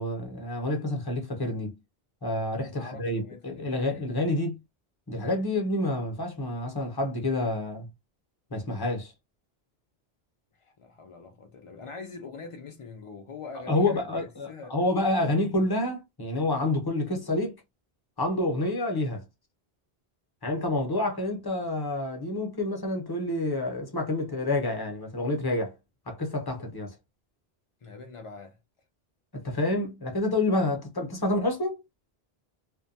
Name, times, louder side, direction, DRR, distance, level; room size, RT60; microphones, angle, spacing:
voice 1, 0.0-1.7 2.2-4.6 5.1-7.9 8.5-9.1 13.7-17.6 18.2-19.2 20.4-25.7 26.1-26.9 29.3-31.8, left 2 dB, 25° left, 0.7 m, -28 dB
voice 2, 2.7-4.0 10.6-14.8 27.8-28.6, left 4 dB, 55° left, 0.3 m, -44 dB
2.7 x 2.1 x 2.6 m
omnidirectional pair, 1.1 m